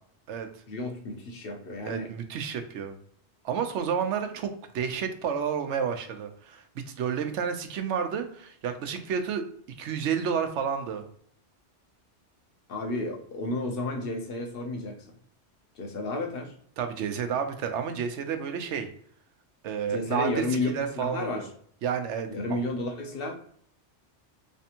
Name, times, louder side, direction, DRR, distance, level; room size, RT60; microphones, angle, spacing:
voice 1, 0.7-2.1 12.7-15.1 15.7-16.5 19.9-21.5 22.3-23.3, left 2 dB, 60° left, 4 dB, 1.0 m, -32 dB
voice 2, 1.8-3.0 3.4-9.5 9.8-11.1 16.8-18.9 19.6-21.5 21.8-22.6, right 7 dB, 90° right, 7 dB, 0.9 m, -30 dB
3.3 x 3.3 x 2.8 m, 0.62 s
omnidirectional pair, 1.2 m